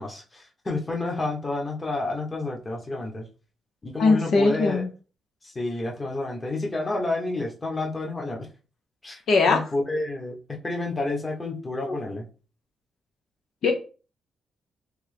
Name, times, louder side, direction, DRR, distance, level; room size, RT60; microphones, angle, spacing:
voice 1, 0.0-3.2 3.8-4.8 5.4-8.5 9.0-9.2 9.5-12.2, left 2 dB, 25° left, 0 dB, 1.1 m, -30 dB
voice 2, 4.0-4.9 9.3-9.6 11.9-12.0 13.6-13.7, left 4 dB, 65° left, 3 dB, 0.7 m, -20 dB
3.4 x 3.0 x 3.3 m, 0.35 s
cardioid pair, 95°, 0 cm